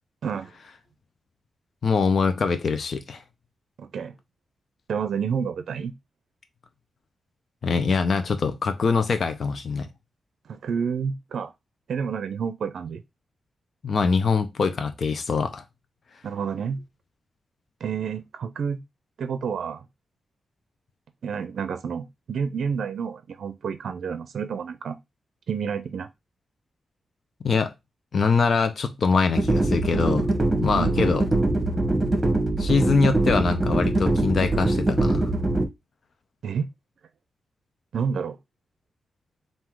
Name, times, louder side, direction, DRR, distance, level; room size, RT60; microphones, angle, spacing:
voice 1, 1.8-3.2 7.6-9.9 13.8-15.6 27.4-27.7 28.1-30.3 30.6-31.2 32.6-35.3, left 5 dB, 55° left, 0.7 m, -23 dB
voice 2, 3.8-4.2 4.9-5.9 10.5-11.5 11.9-13.0 16.2-16.8 17.8-18.8 19.2-19.9 21.2-25.0 25.5-26.1 30.8-31.0 36.4-36.7 37.9-38.4, right 6 dB, 75° right, 0.5 m, -29 dB
sound 1, 29.3-35.7, right 2 dB, 25° right, 1.1 m, -23 dB
3.7 x 2.7 x 4.5 m
cardioid pair, 90°, 0 cm